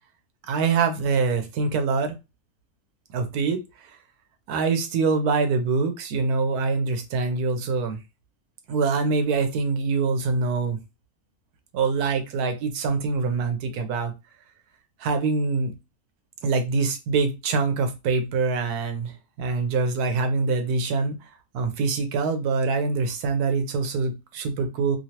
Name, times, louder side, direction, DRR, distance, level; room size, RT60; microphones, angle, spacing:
voice 1, 0.5-2.2 3.1-3.6 4.5-8.0 8.7-10.8 11.7-14.1 15.0-15.7 16.4-19.1 19.4-21.1 21.5-25.0, right 4 dB, 90° right, 7 dB, 1.2 m, -24 dB
3.1 x 2.7 x 2.8 m, 0.26 s
omnidirectional pair, 1.6 m